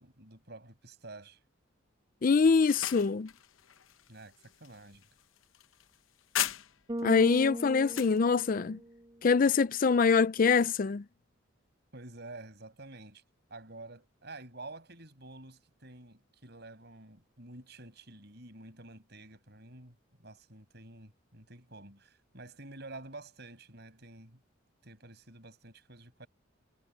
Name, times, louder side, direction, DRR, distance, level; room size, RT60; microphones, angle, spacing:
voice 1, 0.0-1.4 4.1-5.0 11.9-13.2 13.5-24.4 24.8-26.3, right 2 dB, 55° right, 6.5 m, -49 dB
voice 2, 2.2-3.3 7.0-8.8 9.2-11.0, left 5 dB, 45° left, 0.4 m, -24 dB
sound 1, 2.4-7.0 7.4-8.2, left 11 dB, 80° left, 0.8 m, -39 dB
Bass guitar, 6.9-9.2, right 1 dB, 25° right, 1.7 m, -39 dB
head